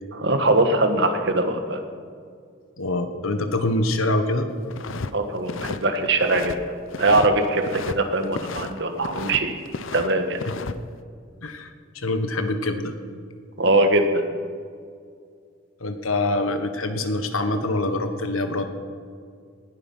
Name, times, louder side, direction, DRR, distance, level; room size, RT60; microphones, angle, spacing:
voice 1, 0.1-1.8 5.1-6.5 7.0-9.6 9.9-10.4 13.6-14.2, right 2 dB, 60° right, 6 dB, 1.6 m, -21 dB
voice 2, 2.8-4.5 11.4-12.9 15.8-18.7, left 2 dB, 90° left, 7 dB, 1.5 m, -25 dB
sound 1, 4.7-5.1 5.4-6.6 6.9-8.0 8.2-9.4 9.7-10.7, left 4 dB, 70° left, 0.7 m, -33 dB
19.0 x 12.0 x 5.6 m, 2.2 s
head